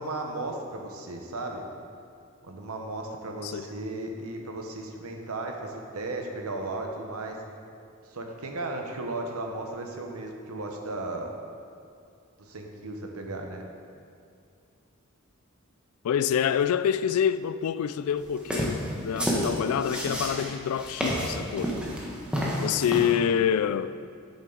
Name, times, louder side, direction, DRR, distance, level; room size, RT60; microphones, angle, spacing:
voice 1, 0.0-1.6 2.4-7.4 8.1-11.3 12.4-13.6, right 2 dB, 80° right, 0.9 m, -35 dB
voice 2, 16.0-21.8 22.6-24.0, left 8 dB, 80° left, 0.3 m, -27 dB
sound 1, 18.4-23.1, equal, 5° right, 1.0 m, -29 dB
8.1 x 7.3 x 3.9 m
head